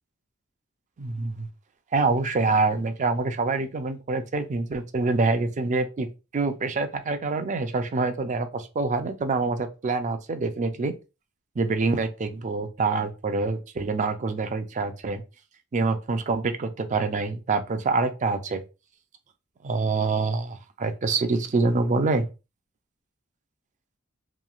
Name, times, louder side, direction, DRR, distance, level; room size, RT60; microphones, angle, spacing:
voice 1, 1.0-1.5 1.9-6.1 6.3-11.0 11.6-15.2 15.7-18.6 19.6-22.3, right 3 dB, 35° right, 0.4 m, -26 dB
3.0 x 2.7 x 2.3 m
head